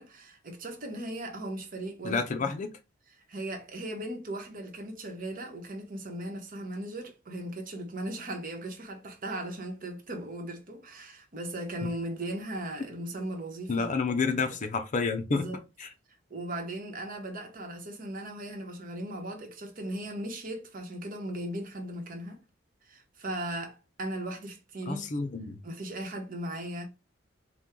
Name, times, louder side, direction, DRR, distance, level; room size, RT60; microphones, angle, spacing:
voice 1, 0.0-2.5 3.3-13.9 15.3-15.6 16.3-22.4 22.8-25.1 25.6-26.9, right 1 dB, 45° right, 1.0 m, -37 dB
voice 2, 2.0-2.7 13.7-15.5 15.8-15.9 24.9-25.6, left 4 dB, 40° left, 0.5 m, -29 dB
4.3 x 2.2 x 3.6 m
head